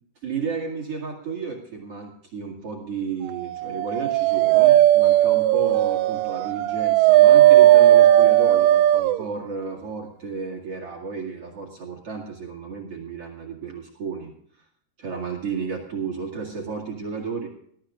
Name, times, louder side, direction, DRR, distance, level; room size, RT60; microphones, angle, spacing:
voice 1, 0.2-14.3 15.0-17.5, right 5 dB, 45° right, -2 dB, 2.2 m, -32 dB
Dog, 3.6-9.2, right 13 dB, 90° right, 3.1 m, -16 dB
20.5 x 14.0 x 2.5 m, 0.65 s
omnidirectional pair, 5.4 m